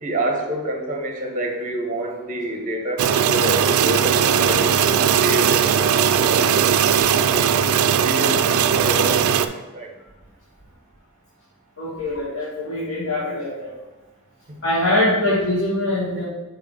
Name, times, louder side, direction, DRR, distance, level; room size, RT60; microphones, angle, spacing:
voice 1, 0.0-7.5 8.0-9.9 14.5-14.6, right 1 dB, 40° right, 2 dB, 1.2 m, -28 dB
sound 1, 3.0-9.5, right 8 dB, 75° right, 0.4 m, -18 dB
voice 2, 4.4-5.0 11.8-13.7 14.6-16.2, left 1 dB, 75° left, -9 dB, 2.2 m, -23 dB
6.5 x 3.5 x 5.0 m, 1.2 s
head